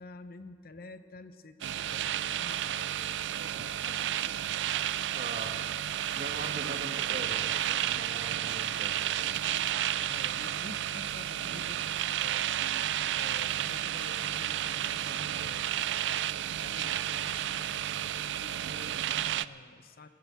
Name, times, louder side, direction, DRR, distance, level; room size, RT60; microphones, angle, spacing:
voice 1, 0.0-3.1 3.5-4.4 10.1-12.5 13.1-15.9 16.5-20.1, left 3 dB, 55° left, 10 dB, 0.8 m, -49 dB
sound 1, 1.6-19.5, right 11 dB, 75° right, 0.4 m, -32 dB
voice 2, 5.1-5.6 6.1-9.0, right 2 dB, 45° right, 5 dB, 1.5 m, -42 dB
16.0 x 10.5 x 8.2 m, 2.2 s
head